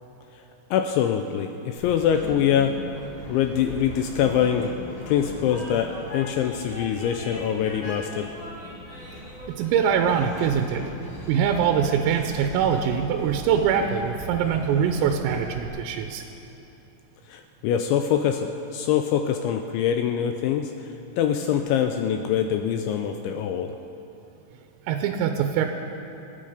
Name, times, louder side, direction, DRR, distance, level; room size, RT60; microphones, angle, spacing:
voice 1, 0.7-2.7 3.3-4.7 5.1-8.3 17.3-23.7, left 9 dB, 85° left, 6 dB, 2.7 m, -24 dB
Train, 1.8-15.7, equal, 40° left, 4.9 m, -39 dB
voice 2, 9.5-10.9 11.3-16.2 24.8-25.7, right 7 dB, 90° right, 5 dB, 3.4 m, -23 dB
27.0 x 9.6 x 5.1 m, 3.0 s
omnidirectional pair, 5.9 m